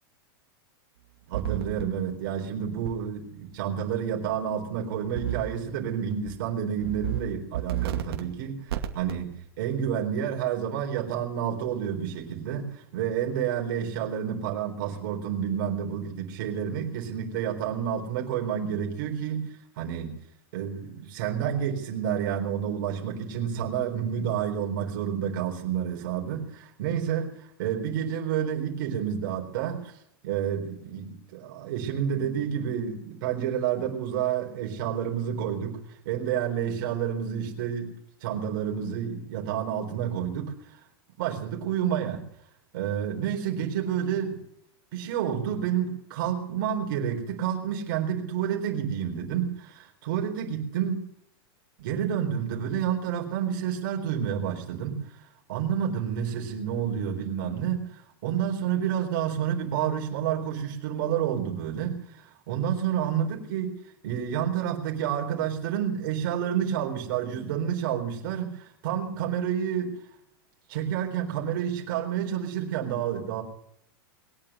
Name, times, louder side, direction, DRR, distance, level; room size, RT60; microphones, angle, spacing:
voice 1, 1.3-19.5 19.8-20.2 20.5-29.9 30.2-37.9 38.2-40.8 41.2-42.2 42.7-44.4 44.9-51.1 51.8-55.2 55.5-63.8 64.0-70.0 70.7-73.4, right 9 dB, 60° right, 1 dB, 4.1 m, -29 dB
sound 1, 1.3-1.8 2.9-3.0 5.2-5.6 6.0-6.3 6.8-7.2 7.5-8.2 8.7-9.1, right 12 dB, 85° right, 2.5 m, -31 dB
21.5 x 9.0 x 6.8 m, 0.76 s
supercardioid pair, 160°, 13 cm